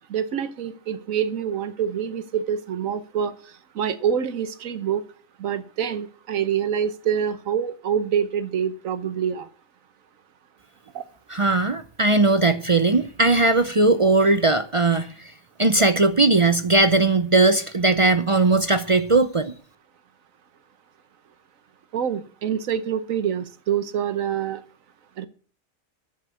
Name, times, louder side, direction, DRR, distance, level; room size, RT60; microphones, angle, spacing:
voice 1, 0.1-3.3 3.7-5.0 5.4-9.5 10.9-11.0 21.9-24.6 25.2-25.3, right 8 dB, 75° right, 12 dB, 1.3 m, -26 dB
voice 2, 11.3-15.1 15.6-19.5, right 2 dB, 40° right, 10 dB, 0.5 m, -19 dB
10.5 x 6.6 x 8.4 m, 0.41 s
omnidirectional pair, 1.4 m